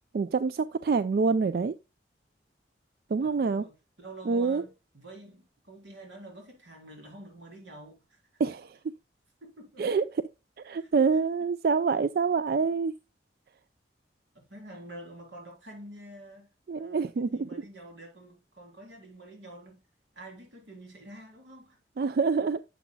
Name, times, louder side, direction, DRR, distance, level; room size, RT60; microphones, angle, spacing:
voice 1, 0.1-1.7 3.1-3.6 4.3-4.6 8.4-8.8 9.8-10.1 10.6-12.9 16.7-17.6 22.0-22.6, right 5 dB, 55° right, 0.3 m, -26 dB
voice 2, 3.2-8.4 9.4-9.9 10.7-11.2 12.5-12.6 14.3-19.8 20.1-21.8, right 1 dB, 85° right, 3.7 m, -48 dB
10.0 x 7.0 x 2.2 m
head